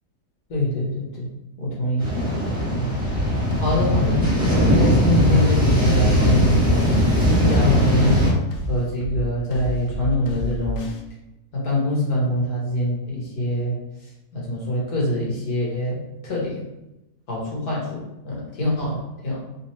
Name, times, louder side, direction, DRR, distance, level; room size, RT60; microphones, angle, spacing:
voice 1, 0.5-1.3 1.6-2.1 2.6-2.9 3.6-4.3 4.6-7.1 7.3-8.3 8.7-10.9 11.5-13.8 14.3-16.6 17.3-19.4, left 1 dB, 70° left, -5 dB, 1.9 m, -24 dB
sound 1, 2.0-8.3, equal, 5° right, 1.1 m, -19 dB
sound 2, 3.0-11.0, left 1 dB, 90° left, 1.2 m, -30 dB
3.7 x 3.1 x 2.9 m, 0.94 s
omnidirectional pair, 1.7 m